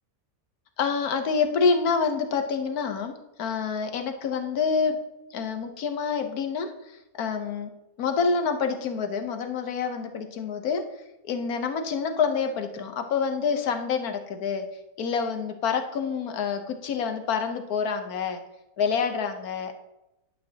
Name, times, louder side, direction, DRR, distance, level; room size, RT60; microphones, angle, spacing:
voice 1, 0.8-5.0 5.3-7.7 8.0-10.8 11.2-14.7 15.0-18.4 18.8-19.7, left 5 dB, 80° left, 6 dB, 1.4 m, -27 dB
11.0 x 8.8 x 2.8 m, 0.94 s
omnidirectional pair, 1.6 m